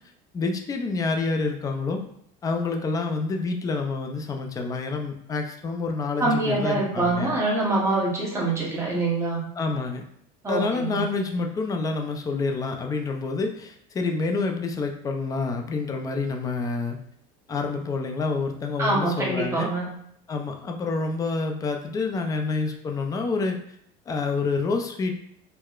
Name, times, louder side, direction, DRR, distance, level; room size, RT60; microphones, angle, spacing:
voice 1, 0.3-2.0 2.4-7.3 9.6-10.0 10.5-17.0 17.5-19.7 20.3-23.6 24.1-25.1, left 4 dB, 20° left, 4 dB, 0.4 m, -28 dB
voice 2, 6.2-9.5 10.4-11.1 18.8-19.9, right 2 dB, 15° right, -4 dB, 0.9 m, -25 dB
4.6 x 2.1 x 2.4 m, 0.70 s
cardioid pair, 135°, 18 cm